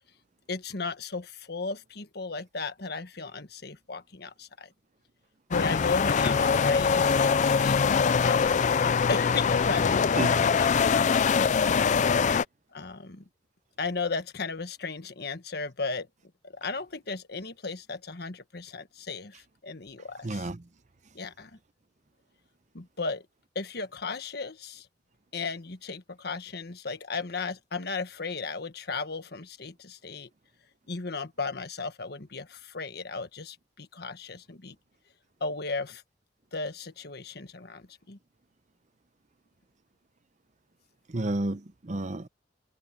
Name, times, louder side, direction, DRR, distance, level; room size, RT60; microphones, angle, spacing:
voice 1, 0.5-4.7 5.5-7.8 8.2-11.7 12.7-13.2 13.8-16.1 16.4-20.5 21.1-21.5 22.7-23.2 23.5-24.9 25.3-30.3 30.9-34.7 35.4-36.0 36.5-38.2, left 4 dB, 60° left, 1.5 m, -35 dB
sound 1, 5.5-12.4, left 6 dB, 45° left, 0.4 m, -23 dB
voice 2, 20.2-20.6 41.1-42.3, right 2 dB, 40° right, 0.8 m, -31 dB
head